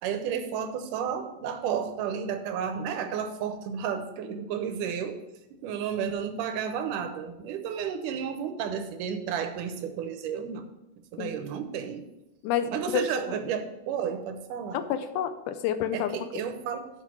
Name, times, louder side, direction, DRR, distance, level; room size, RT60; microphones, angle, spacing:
voice 1, 0.0-5.2 5.5-10.7 11.1-12.1 12.7-14.8 15.9-16.9, right 7 dB, 85° right, 8 dB, 2.4 m, -32 dB
voice 2, 12.4-13.4 14.7-16.3, left 9 dB, 80° left, 10 dB, 2.1 m, -29 dB
7.4 x 5.9 x 6.2 m, 0.96 s
omnidirectional pair, 3.6 m